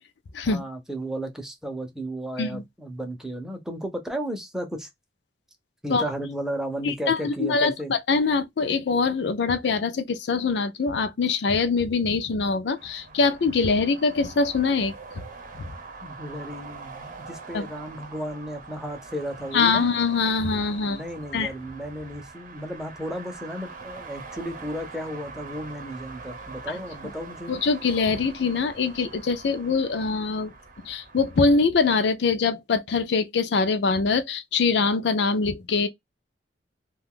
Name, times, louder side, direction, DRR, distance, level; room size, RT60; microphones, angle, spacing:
voice 1, 0.4-4.9 5.8-7.9 16.0-19.9 20.8-27.5, right 1 dB, 5° right, 0.6 m, -34 dB
voice 2, 6.8-14.9 17.5-17.6 19.5-21.0 21.3-21.5 27.5-30.5 30.8-35.9, left 4 dB, 70° left, 0.5 m, -23 dB
sound 1, 12.8-31.6, right 4 dB, 50° right, 0.8 m, -43 dB
2.4 x 2.3 x 3.6 m
head